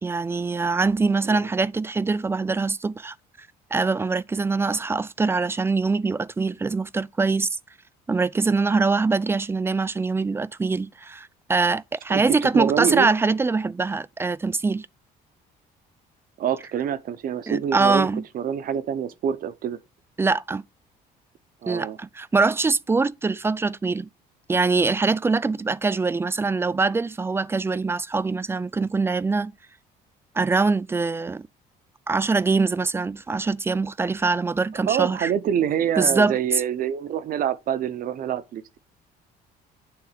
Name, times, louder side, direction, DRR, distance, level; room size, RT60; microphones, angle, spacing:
voice 1, 0.0-3.1 3.7-7.5 8.1-14.9 17.5-18.2 20.2-20.6 21.7-24.1 24.5-29.5 30.4-31.5 32.1-35.3 36.0-36.4, right 4 dB, 15° right, 0.3 m, -23 dB
voice 2, 12.1-13.1 16.4-18.1 18.3-19.8 21.6-22.0 34.7-38.8, right 9 dB, 60° right, 0.9 m, -26 dB
9.0 x 3.5 x 5.0 m
cardioid pair, 110°, 17 cm